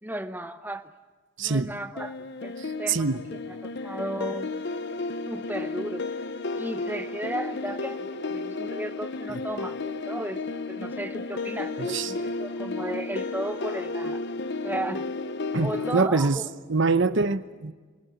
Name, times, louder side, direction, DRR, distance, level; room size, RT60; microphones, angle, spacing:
voice 1, 0.0-0.9 1.4-3.2 3.5-4.5 5.3-6.1 6.6-14.2 14.6-15.1 15.6-16.5, right 1 dB, 10° right, 9 dB, 0.9 m, -35 dB
voice 2, 1.4-1.7 2.9-3.2 11.9-12.1 15.5-16.4 16.7-17.7, right 4 dB, 65° right, 12 dB, 0.9 m, -24 dB
sound 1, 2.0-16.1, left 3 dB, 55° left, 0.8 m, -33 dB
25.0 x 18.0 x 9.4 m, 1.4 s
head